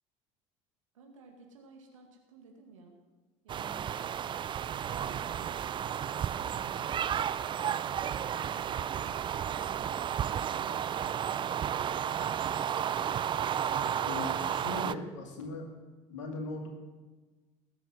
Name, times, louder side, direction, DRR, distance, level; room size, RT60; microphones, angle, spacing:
voice 1, 0.9-3.0 3.4-3.9, right 3 dB, 75° right, 2 dB, 2.2 m, -56 dB
sound 1, 3.5-14.9, right 9 dB, 30° right, 0.4 m, -32 dB
voice 2, 14.0-15.7 16.1-16.7, left 2 dB, 70° left, 3 dB, 2.2 m, -39 dB
19.5 x 7.9 x 6.2 m, 1.3 s
figure-of-eight pair, 60°, 17 cm